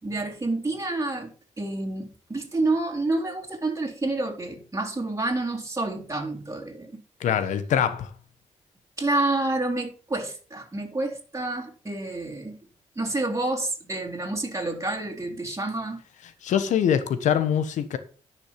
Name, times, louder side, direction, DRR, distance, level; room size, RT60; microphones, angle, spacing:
voice 1, 0.0-7.0 9.0-12.6 13.0-16.0, right 2 dB, 25° right, 3.7 m, -29 dB
voice 2, 7.2-8.1 16.4-18.0, left 8 dB, 85° left, 1.4 m, -23 dB
10.5 x 6.6 x 6.0 m
cardioid pair, 60°, 12 cm